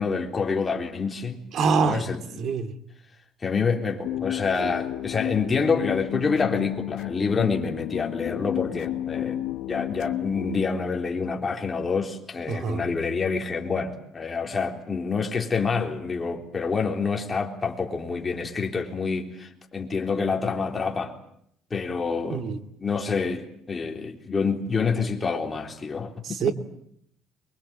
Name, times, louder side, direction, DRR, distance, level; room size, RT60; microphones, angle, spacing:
voice 1, 0.0-1.4 1.8-2.4 3.4-9.4 9.7-21.1 21.7-22.5 22.8-26.5, left 5 dB, 20° left, 3.8 m, -27 dB
voice 2, 1.5-2.0 2.4-2.7 12.5-12.8 22.3-22.6 26.4-26.5, right 5 dB, 50° right, 2.5 m, -24 dB
sound 1, 4.0-10.7, left 13 dB, 75° left, 1.1 m, -31 dB
24.0 x 22.5 x 9.0 m
cardioid pair, 145°, 0 cm